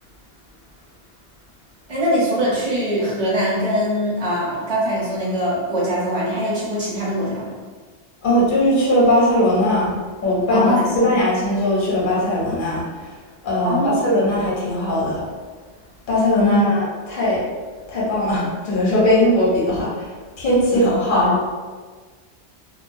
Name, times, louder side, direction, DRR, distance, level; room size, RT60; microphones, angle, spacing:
voice 1, 1.9-7.6 10.5-11.0 13.6-14.0 14.3-14.4 16.4-16.6 20.7-20.8 21.1-21.3, equal, 35° right, -7 dB, 0.8 m, -22 dB
voice 2, 8.2-9.9 10.2-12.8 13.4-15.3 16.1-17.4 17.9-20.1 20.4-21.3, left 1 dB, 50° left, -6 dB, 0.9 m, -19 dB
2.2 x 2.2 x 2.5 m, 1.4 s
omnidirectional pair, 1.1 m